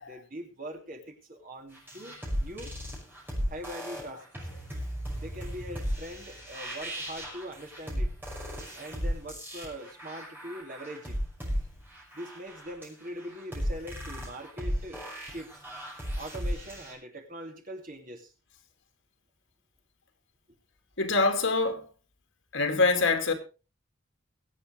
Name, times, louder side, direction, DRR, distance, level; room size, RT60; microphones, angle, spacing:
voice 1, 0.0-2.7 3.5-4.5 5.2-8.1 8.7-11.2 12.1-15.6 16.1-18.3, equal, 45° right, 2.8 m, -42 dB
sound 1, 1.7-16.9, equal, 10° right, 5.7 m, -36 dB
voice 2, 21.0-21.9 22.5-23.3, left 3 dB, 80° left, 2.6 m, -25 dB
23.0 x 8.0 x 3.4 m
head